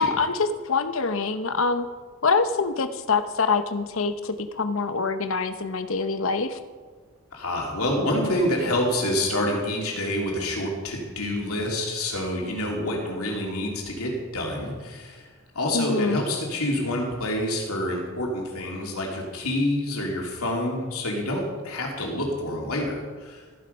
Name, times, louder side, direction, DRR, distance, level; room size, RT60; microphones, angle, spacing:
voice 1, 0.0-1.9 2.2-6.6 15.7-16.2, left 4 dB, 65° left, 10 dB, 0.8 m, -25 dB
voice 2, 7.3-15.3 15.5-23.4, left 1 dB, 85° left, -1 dB, 3.1 m, -27 dB
14.5 x 9.9 x 5.4 m, 1.5 s
head